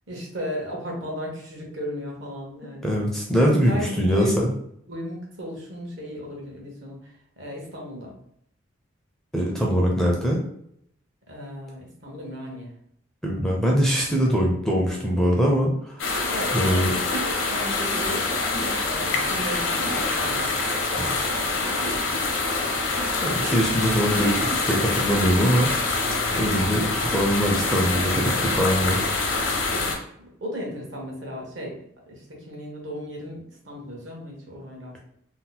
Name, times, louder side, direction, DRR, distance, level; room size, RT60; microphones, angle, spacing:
voice 1, 0.1-3.0 3.7-4.5 4.9-8.1 11.3-12.7 16.3-18.4 18.8-20.7 21.0-21.4 21.6-22.3 29.7-31.8 32.1-35.0, equal, 65° right, -1 dB, 0.9 m, -35 dB
voice 2, 2.8-4.5 9.3-10.4 13.2-16.1 16.5-16.9 21.0-21.1 23.2-25.7 26.3-29.1, equal, ahead, -2 dB, 0.4 m, -22 dB
sound 1, 16.0-30.0, left 3 dB, 70° left, 0.7 m, -25 dB
2.7 x 2.0 x 3.9 m, 0.70 s
head